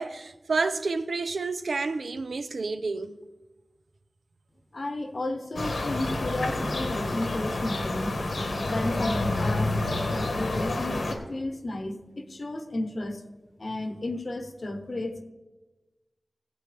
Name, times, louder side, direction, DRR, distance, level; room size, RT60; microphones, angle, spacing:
voice 1, 0.0-3.2, right 4 dB, 85° right, 0.5 m, -29 dB
voice 2, 4.7-8.2 8.6-13.2 13.6-15.2, left 2 dB, 55° left, 0.9 m, -33 dB
sound 1, 5.6-11.2, left 2 dB, 85° left, 1.3 m, -29 dB
18.0 x 7.8 x 3.4 m
wide cardioid pair, 80°, 0 cm